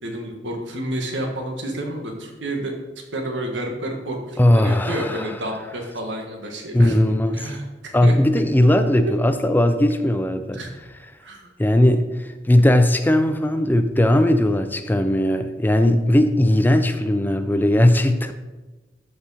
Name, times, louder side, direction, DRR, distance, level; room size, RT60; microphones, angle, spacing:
voice 1, 0.0-2.7 3.1-7.0 7.3-8.1 9.0-9.1 10.5-10.7 11.2-11.5, right 1 dB, 90° right, 2 dB, 1.6 m, -30 dB
voice 2, 4.4-5.3 6.7-7.5 7.9-10.6 11.6-18.3, left 1 dB, 10° left, 9 dB, 0.4 m, -18 dB
13.5 x 4.9 x 4.2 m, 1.2 s
head